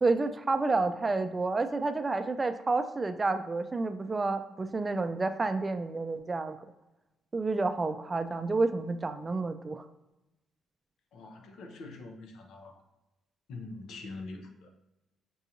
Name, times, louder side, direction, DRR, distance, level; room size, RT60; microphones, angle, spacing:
voice 1, 0.0-6.6 7.3-9.8, right 3 dB, 25° right, 9 dB, 0.3 m, -29 dB
voice 2, 11.1-12.7 13.5-14.7, left 3 dB, 80° left, 4 dB, 0.6 m, -44 dB
5.4 x 2.5 x 2.8 m, 1.0 s
cardioid pair, 90°, 0 cm